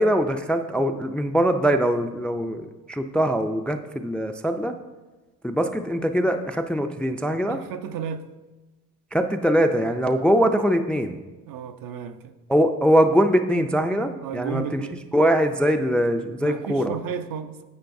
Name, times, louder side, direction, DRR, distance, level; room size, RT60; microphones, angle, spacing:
voice 1, 0.0-4.8 5.4-7.6 9.1-11.2 12.5-14.8 15.1-17.0, equal, 5° left, 0.3 m, -22 dB
voice 2, 7.5-8.3 11.5-12.3 14.2-15.0 16.4-17.6, right 7 dB, 65° right, 0.7 m, -33 dB
10.5 x 7.7 x 2.6 m
cardioid pair, 95°, 36 cm